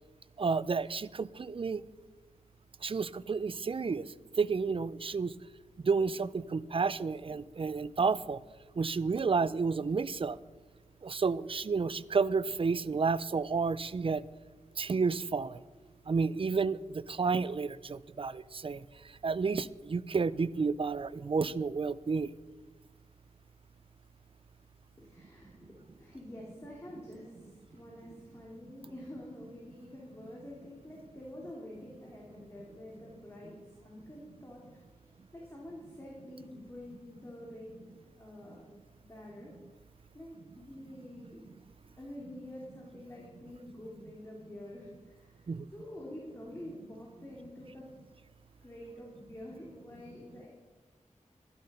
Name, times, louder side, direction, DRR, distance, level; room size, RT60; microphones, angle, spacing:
voice 1, 0.4-1.8 2.8-4.1 4.4-5.3 5.8-8.4 8.8-10.4 11.0-14.2 14.8-15.6 16.1-18.8 19.2-22.3 28.8-28.9 45.5-45.7, right 4 dB, 45° right, 18 dB, 0.4 m, -31 dB
voice 2, 25.0-38.7 39.1-39.5 40.1-41.5 42.0-47.9 48.6-50.5, left 1 dB, 20° left, -4 dB, 2.8 m, -48 dB
12.5 x 11.5 x 5.4 m, 1.4 s
wide cardioid pair, 90°, 13 cm